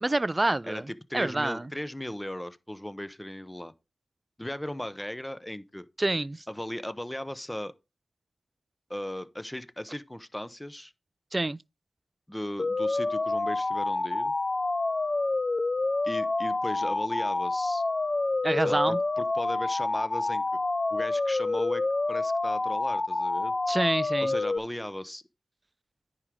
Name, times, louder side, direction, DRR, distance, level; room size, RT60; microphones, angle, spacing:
voice 1, 0.0-0.8 1.1-1.6 6.0-6.4 11.3-11.6 18.4-19.0 23.7-24.3, right 2 dB, 30° right, 0.3 m, -27 dB
voice 2, 0.6-3.7 4.4-5.9 6.5-7.7 8.9-10.9 12.3-14.3 16.0-17.8 18.6-20.4 20.9-21.8 22.1-23.5 24.2-25.2, left 1 dB, 10° left, 0.8 m, -37 dB
sound 1, 12.6-24.6, left 2 dB, 40° left, 0.5 m, -28 dB
9.7 x 5.0 x 4.6 m
cardioid pair, 45°, 0 cm